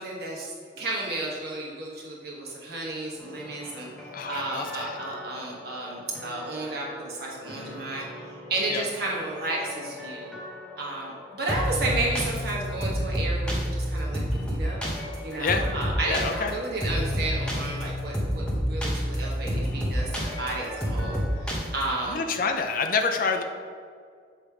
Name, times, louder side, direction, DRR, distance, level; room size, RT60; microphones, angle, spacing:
voice 1, 0.0-3.9 4.3-8.1 8.5-10.3 10.8-14.2 14.5-14.8 15.2-20.1 20.4-22.2, right 2 dB, 50° right, -3 dB, 1.3 m, -32 dB
sound 1, 3.2-21.8, equal, 5° left, 0.8 m, -31 dB
voice 2, 4.1-5.0 8.7-8.8 15.4-15.7 16.0-16.5 22.0-23.4, left 4 dB, 45° left, 5 dB, 0.4 m, -27 dB
6.8 x 3.2 x 4.8 m, 2.1 s
head